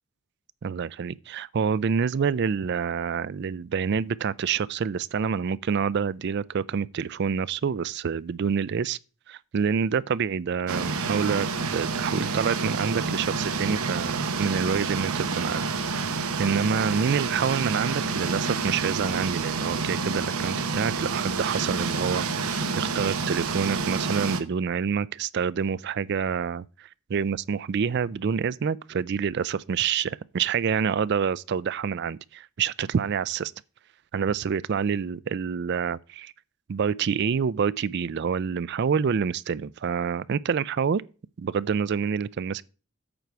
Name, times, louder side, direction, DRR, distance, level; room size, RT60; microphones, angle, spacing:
voice 1, 0.6-9.0 9.3-15.6 16.2-33.5 34.1-36.3 36.7-41.0 41.4-42.6, right 6 dB, 50° right, 0.4 m, -27 dB
sound 1, 10.7-24.4, right 4 dB, 90° right, 1.0 m, -28 dB
9.0 x 4.7 x 6.8 m
head